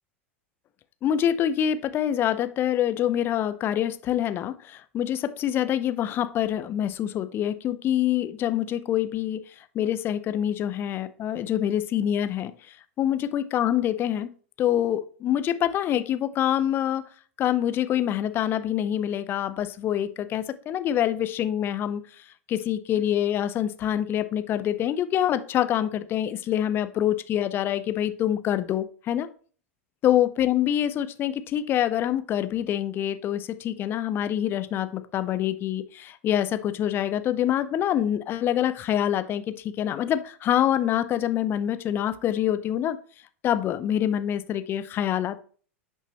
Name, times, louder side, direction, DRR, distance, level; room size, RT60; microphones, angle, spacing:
voice 1, 1.0-9.4 9.7-12.5 13.0-14.3 14.6-17.1 17.4-22.0 22.5-29.3 30.0-39.4 39.8-43.0 43.4-45.4, left 11 dB, 30° left, 13 dB, 0.7 m, -25 dB
10.0 x 5.5 x 3.0 m, 0.43 s
figure-of-eight pair, 85°, 7 cm